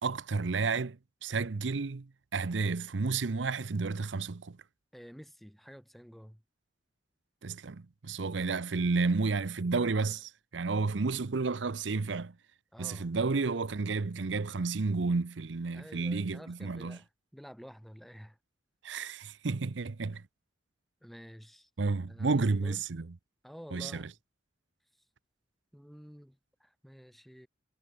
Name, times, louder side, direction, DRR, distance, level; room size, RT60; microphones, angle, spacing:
voice 1, 0.0-4.6 7.4-12.3 12.8-17.0 18.8-20.2 21.8-23.1 23.7-24.1, right 4 dB, 80° right, 0.7 m, -31 dB
voice 2, 4.9-6.4 12.7-13.1 15.7-18.4 21.0-21.7 22.1-22.8 23.4-24.1 25.7-27.5, equal, ahead, 5.6 m, -50 dB
head